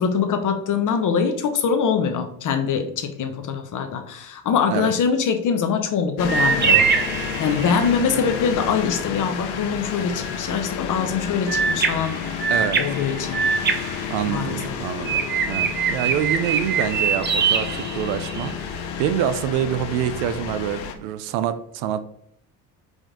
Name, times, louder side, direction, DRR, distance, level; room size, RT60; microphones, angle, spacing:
voice 1, 0.0-12.2 12.8-13.4 14.3-14.7, left 6 dB, 50° left, 7 dB, 0.9 m, -23 dB
sound 1, 6.2-20.9, left 7 dB, 80° left, 0.8 m, -31 dB
sound 2, 6.3-8.0 11.5-14.7 15.1-18.5, right 6 dB, 30° right, 0.6 m, -23 dB
voice 2, 14.1-18.6 19.0-22.0, right 10 dB, 90° right, 12 dB, 0.5 m, -26 dB
5.1 x 2.5 x 3.7 m, 0.70 s
cardioid pair, 95°, 38 cm